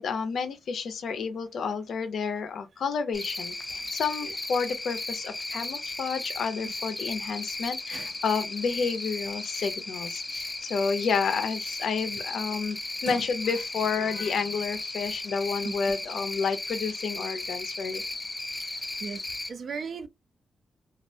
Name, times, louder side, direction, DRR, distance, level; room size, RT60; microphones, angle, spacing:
voice 1, 0.0-12.8 13.0-18.0, left 5 dB, 70° left, 0.5 m, -30 dB
Cricket, 3.1-19.5, left 2 dB, 15° left, 0.5 m, -35 dB
voice 2, 18.6-19.2 19.5-20.1, right 5 dB, 50° right, 0.3 m, -37 dB
2.3 x 2.0 x 2.6 m
wide cardioid pair, 155°, 0 cm